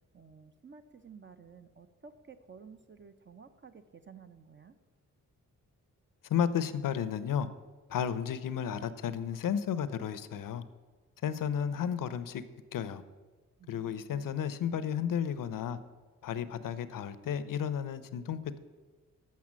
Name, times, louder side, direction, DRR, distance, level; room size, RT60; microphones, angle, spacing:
voice 1, 0.1-4.7 13.6-14.9, right 6 dB, 35° right, 9 dB, 0.6 m, -53 dB
voice 2, 6.3-7.5 7.9-10.6 11.2-12.4 12.7-13.0 13.7-15.8 16.2-18.6, left 8 dB, 70° left, 13 dB, 0.6 m, -33 dB
7.4 x 5.8 x 7.3 m, 1.3 s
cardioid pair, 75°, 34 cm